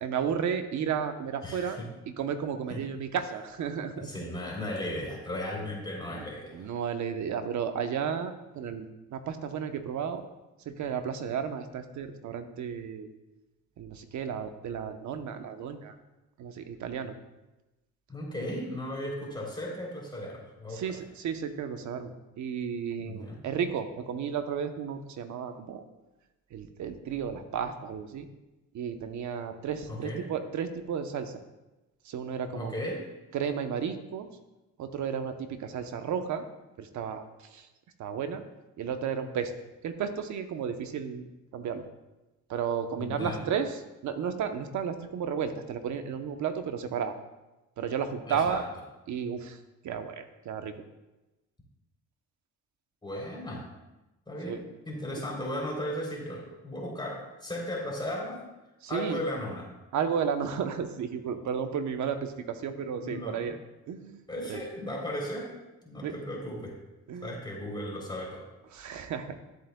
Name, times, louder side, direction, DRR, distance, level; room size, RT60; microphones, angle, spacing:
voice 1, 0.0-1.8 2.1-4.1 6.1-6.2 6.5-10.2 10.7-13.1 13.8-15.9 16.4-17.1 20.7-25.8 26.5-28.3 28.7-31.3 32.0-32.7 33.3-34.3 34.8-36.4 36.8-37.2 37.5-37.7 38.0-38.4 38.8-39.5 39.8-41.2 41.5-41.8 42.5-47.2 47.8-48.6 49.1-49.6 49.8-50.7 54.5-54.6 58.9-59.2 59.9-63.6 63.9-64.2 64.5-64.6 66.0-66.1 67.1-67.3 68.7-69.4, right 7 dB, 70° right, 8 dB, 0.9 m, -33 dB
voice 2, 1.4-1.9 2.7-2.8 4.0-6.7 18.1-21.0 23.0-23.4 29.9-30.2 32.5-33.0 43.0-43.5 48.2-48.6 53.0-53.7 54.3-58.5 58.9-59.7 63.0-63.5 64.3-65.5 65.8-66.7 67.2-68.5, left 1 dB, 15° left, -4 dB, 3.4 m, -36 dB
13.5 x 7.8 x 2.3 m, 1.0 s
cardioid pair, 90°, 30 cm